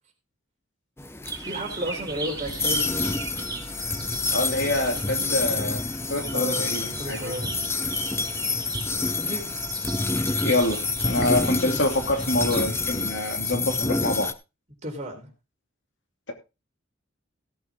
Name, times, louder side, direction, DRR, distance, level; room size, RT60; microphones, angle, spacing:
sound 1, 1.0-14.3, left 3 dB, 15° left, 0.8 m, -28 dB
sound 2, 1.2-13.0, right 4 dB, 20° right, 5.0 m, -38 dB
voice 1, 1.4-3.2 6.3-6.7 7.0-7.6 9.1-9.4 11.2-11.4 14.8-15.3, equal, 35° right, 4.1 m, -33 dB
voice 2, 4.3-5.8 6.1-7.3 10.4-14.3, left 1 dB, 65° left, 2.9 m, -26 dB
16.5 x 8.6 x 3.7 m
head